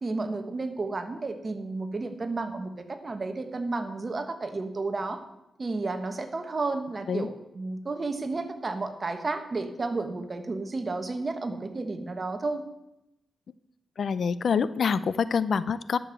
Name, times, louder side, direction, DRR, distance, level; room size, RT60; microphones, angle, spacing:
voice 1, 0.0-5.2 5.6-12.7, right 3 dB, 35° right, 7 dB, 1.3 m, -32 dB
voice 2, 14.0-16.0, left 6 dB, 60° left, 16 dB, 0.4 m, -26 dB
11.0 x 6.9 x 7.5 m, 0.92 s
wide cardioid pair, 110°, 0 cm